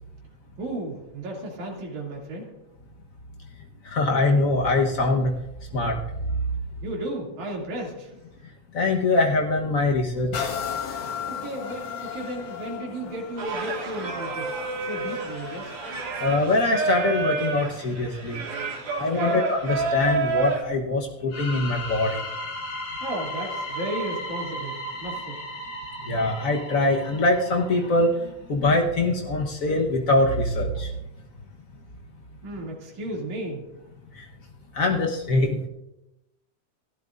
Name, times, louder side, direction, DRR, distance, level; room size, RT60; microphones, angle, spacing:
voice 1, 0.6-2.5 6.8-8.1 11.3-14.6 14.8-15.7 19.0-19.4 23.0-25.4 32.4-33.7, right 1 dB, 80° right, -2 dB, 4.1 m, -34 dB
voice 2, 3.8-5.3 5.7-6.0 8.7-10.5 16.2-18.4 19.0-22.2 26.1-28.1 28.5-30.9 34.2-34.3 34.7-35.6, left 2 dB, 80° left, 0 dB, 0.7 m, -23 dB
sound 1, 10.3-17.9 18.5-18.6, left 7 dB, 60° left, 2.0 m, -36 dB
Singing, 13.4-20.6, right 4 dB, 55° right, 2.7 m, -29 dB
sound 2, 21.3-28.0, equal, 45° left, 3.7 m, -35 dB
29.5 x 12.0 x 2.5 m, 0.92 s
omnidirectional pair, 3.3 m